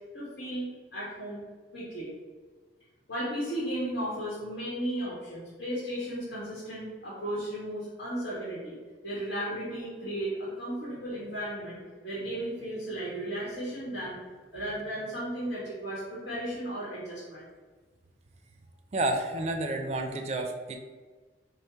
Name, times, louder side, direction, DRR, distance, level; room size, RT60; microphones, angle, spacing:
voice 1, 0.1-0.7 0.9-1.4 1.7-2.1 3.1-8.8 9.0-14.2 14.5-17.5, right 1 dB, 60° left, -8 dB, 1.4 m, -35 dB
voice 2, 18.9-20.8, right 2 dB, 35° right, 5 dB, 0.4 m, -30 dB
5.4 x 2.1 x 4.5 m, 1.4 s
head